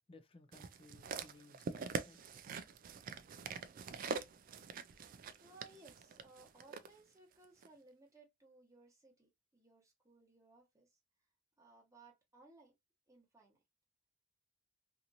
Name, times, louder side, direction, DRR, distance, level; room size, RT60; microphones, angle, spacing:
voice 1, 0.1-2.3, left 2 dB, 30° left, 0.5 m, -61 dB
sound 1, 0.5-6.9 7.6-7.7, right 5 dB, 45° right, 0.3 m, -44 dB
voice 2, 5.4-11.0 11.6-12.7 13.1-13.6, right 3 dB, 15° right, 1.1 m, -62 dB
2.9 x 2.5 x 2.5 m
head